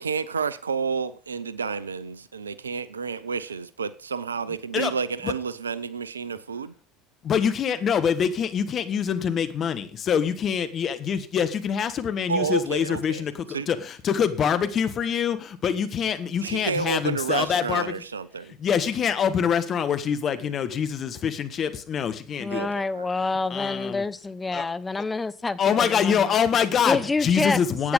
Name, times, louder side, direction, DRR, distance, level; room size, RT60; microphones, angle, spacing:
voice 1, 0.0-6.7 12.3-13.2 13.5-13.7 16.4-18.5 22.5-23.1, right 5 dB, 85° right, 0.6 m, -30 dB
voice 2, 7.2-17.9 18.6-22.7 23.5-24.0 24.5-24.7 25.6-27.9, left 7 dB, 40° left, 1.4 m, -25 dB
voice 3, 22.4-26.3 26.8-27.6 27.8-27.9, left 3 dB, 15° left, 0.9 m, -27 dB
11.5 x 8.7 x 5.2 m
figure-of-eight pair, 70°, 0 cm